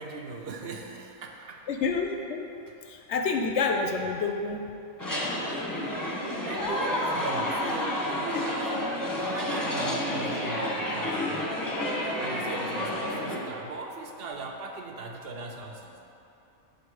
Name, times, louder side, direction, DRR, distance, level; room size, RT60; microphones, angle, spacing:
voice 1, 0.0-1.7 6.4-11.6 12.2-16.0, right 3 dB, 55° right, 2 dB, 0.8 m, -38 dB
voice 2, 1.7-2.5 2.9-4.6, left 4 dB, 65° left, 3 dB, 0.8 m, -28 dB
sound 1, 5.0-13.4, left 1 dB, 15° left, 0.8 m, -30 dB
5.5 x 5.2 x 6.2 m, 2.8 s
omnidirectional pair, 1.4 m